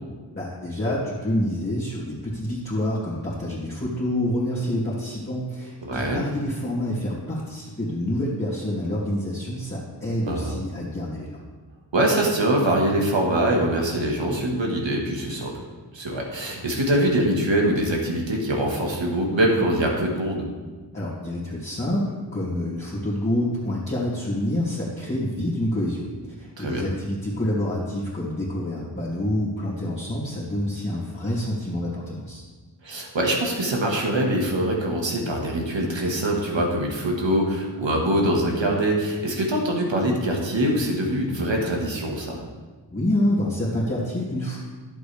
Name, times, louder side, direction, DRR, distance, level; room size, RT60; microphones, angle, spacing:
voice 1, 0.3-11.4 20.9-32.4 42.9-44.6, left 1 dB, 25° left, -10 dB, 2.4 m, -27 dB
voice 2, 5.8-6.2 10.3-10.6 11.9-15.5 15.9-20.5 26.6-26.8 32.8-42.4, right 1 dB, 85° right, -1 dB, 1.8 m, -23 dB
11.0 x 7.9 x 3.5 m, 1.4 s
wide cardioid pair, 65°, 44 cm